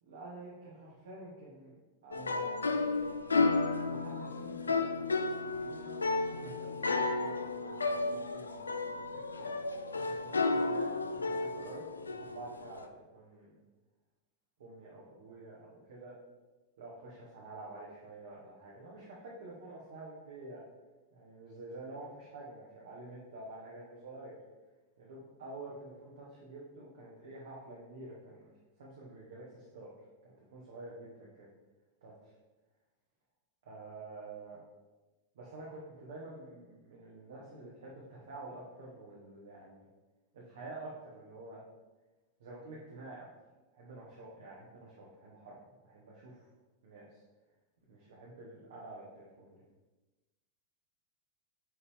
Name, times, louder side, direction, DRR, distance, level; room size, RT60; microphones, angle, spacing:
voice 1, 0.0-1.8 2.0-3.1 3.9-9.0 9.3-9.6 9.9-13.6 14.6-16.2 16.8-20.6 21.1-24.4 25.0-29.9 30.2-31.5 32.0-32.3 33.6-34.6 35.3-39.9 40.3-41.6 42.4-43.3 43.7-45.6 45.8-46.5 46.8-47.2 47.9-49.6, right 2 dB, 60° right, -5 dB, 1.5 m, -49 dB
sound 1, 2.1-12.8, left 3 dB, 75° left, 0.4 m, -33 dB
9.4 x 4.3 x 3.6 m, 1.1 s
figure-of-eight pair, 90°, 0 cm